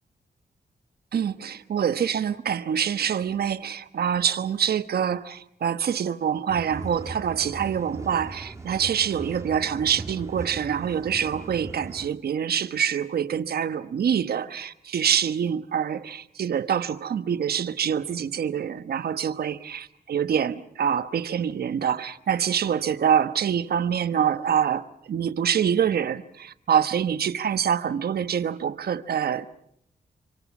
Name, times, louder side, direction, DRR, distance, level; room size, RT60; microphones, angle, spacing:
voice 1, 1.1-29.5, right 8 dB, 80° right, 1.2 m, -25 dB
sound 1, 6.5-12.1, right 3 dB, 20° right, 2.0 m, -39 dB
27.0 x 26.5 x 6.1 m
wide cardioid pair, 105°, 16 cm